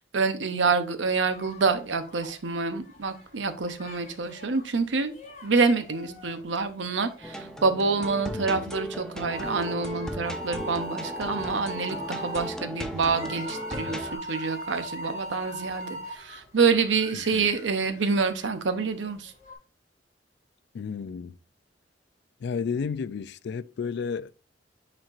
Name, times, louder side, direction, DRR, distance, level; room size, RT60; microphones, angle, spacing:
voice 1, 0.0-5.2 5.4-19.3, right 4 dB, 90° right, 0.7 m, -27 dB
sound 1, 1.3-19.6, left 3 dB, 40° left, 2.6 m, -50 dB
sound 2, 7.2-14.2, equal, 5° left, 0.6 m, -36 dB
voice 2, 8.3-8.7 17.3-17.5 20.7-21.4 22.4-24.3, left 5 dB, 65° left, 0.3 m, -32 dB
sound 3, 9.3-9.7 10.2-12.5 13.0-16.2, equal, 40° right, 1.3 m, -37 dB
8.8 x 4.3 x 2.5 m
head